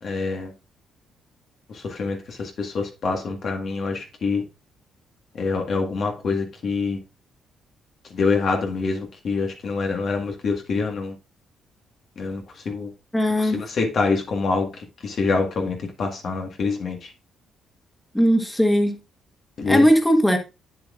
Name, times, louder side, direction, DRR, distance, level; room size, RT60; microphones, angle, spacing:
voice 1, 0.0-0.5 1.7-4.4 5.4-7.0 8.1-11.1 12.2-12.9 13.4-14.7 15.0-17.1 19.6-19.9, left 4 dB, 55° left, 1.7 m, -25 dB
voice 2, 13.1-13.6 18.1-19.0 19.6-20.4, equal, 5° left, 1.5 m, -18 dB
8.4 x 7.5 x 2.5 m
cardioid pair, 90°, 0 cm